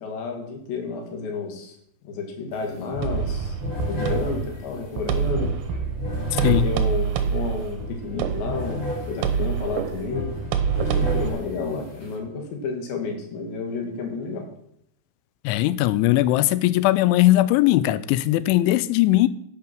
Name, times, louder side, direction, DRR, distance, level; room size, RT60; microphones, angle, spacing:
voice 1, 0.0-1.8 2.0-3.6 3.9-5.5 6.4-8.8 9.1-10.4 10.8-14.4, left 4 dB, 70° left, 4.1 m, -31 dB
sound 1, 2.5-2.6 2.9-12.1, left 1 dB, 30° left, 3.6 m, -32 dB
sound 2, 3.0-11.3, right 8 dB, 75° right, 2.6 m, -27 dB
voice 2, 6.3-6.7 15.4-19.3, left 16 dB, 85° left, 3.0 m, -19 dB
10.5 x 8.8 x 6.1 m
omnidirectional pair, 5.5 m